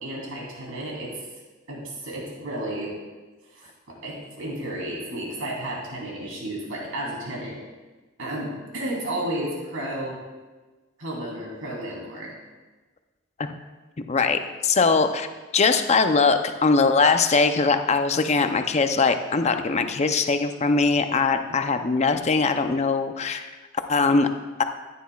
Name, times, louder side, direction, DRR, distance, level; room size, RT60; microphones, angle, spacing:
voice 1, 0.0-1.2 1.7-3.0 3.5-7.6 8.2-10.1 11.0-12.3 21.5-21.6, right 1 dB, 75° right, -3 dB, 3.2 m, -32 dB
voice 2, 14.1-15.3 15.5-23.5 23.9-24.3 24.6-24.7, left 4 dB, 35° left, 8 dB, 0.5 m, -21 dB
14.0 x 9.4 x 2.4 m, 1.3 s
head